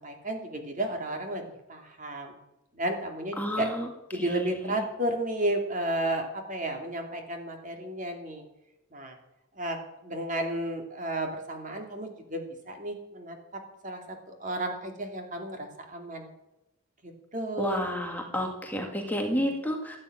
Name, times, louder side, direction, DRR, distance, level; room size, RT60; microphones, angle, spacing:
voice 1, 0.0-1.4 1.7-2.3 2.7-3.7 4.1-8.4 8.9-9.1 9.6-13.4 13.8-16.3 17.0-17.8, right 1 dB, 35° right, 4 dB, 2.8 m, -33 dB
voice 2, 3.4-4.8 17.6-20.0, left 1 dB, 10° left, 2 dB, 1.9 m, -31 dB
15.5 x 9.7 x 8.9 m, 0.91 s
head